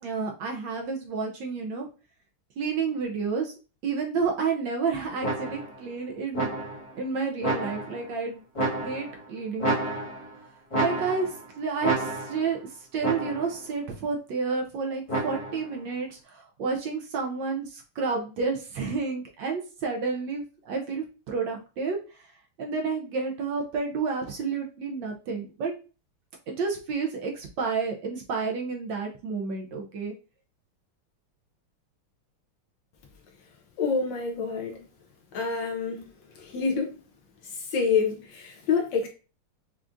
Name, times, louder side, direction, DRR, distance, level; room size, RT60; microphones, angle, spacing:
voice 1, 0.0-1.9 2.6-3.5 3.8-6.5 7.0-8.4 8.8-9.7 10.8-25.7 26.5-30.1, right 5 dB, 70° right, 1.2 m, -30 dB
sound 1, 5.2-5.8 6.3-6.9 7.4-8.1 8.6-9.2 9.6-10.4 10.7-11.4 11.8-12.5 13.0-13.6 15.1-15.7, right 2 dB, 25° left, 0.8 m, -30 dB
voice 2, 33.8-34.8 35.3-36.0 36.4-36.9 37.6-39.1, left 5 dB, 70° left, 1.2 m, -27 dB
5.8 x 2.4 x 2.5 m
omnidirectional pair, 2.4 m